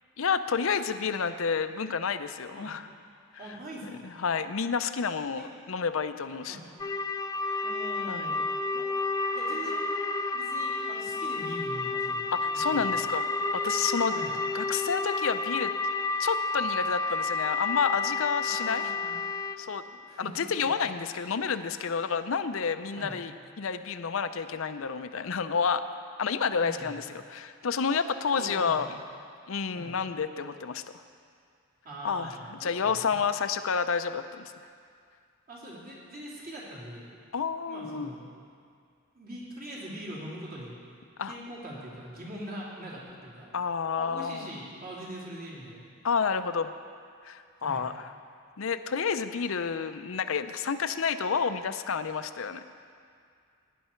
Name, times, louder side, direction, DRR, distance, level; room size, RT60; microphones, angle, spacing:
voice 1, 0.2-2.9 4.0-6.6 7.5-7.6 8.1-8.2 12.3-13.2 13.5-14.1 14.5-15.7 16.2-18.9 19.6-19.8 20.2-25.8 26.2-28.9 29.5-30.8 32.0-34.5 37.3-38.1 41.2-41.3 43.5-44.5 46.0-46.7 47.2-48.1 48.6-52.8, left 6 dB, 65° left, 10 dB, 0.5 m, -30 dB
voice 2, 3.4-4.0 5.4-5.5 6.5-6.6 7.6-8.4 8.7-8.9 9.3-9.9 10.3-12.2 12.7-12.9 14.1-14.3 18.4-19.2 20.1-20.3 23.0-23.2 26.5-26.9 28.3-28.8 29.7-30.0 31.8-33.1 35.5-37.1 37.7-38.2 39.1-40.7 41.3-43.5 44.0-45.8 47.6-47.9, right 1 dB, 40° right, -6 dB, 3.0 m, -42 dB
sound 1, 6.8-19.6, left 3 dB, 15° left, 0.3 m, -30 dB
17.5 x 10.0 x 4.5 m, 2.2 s
head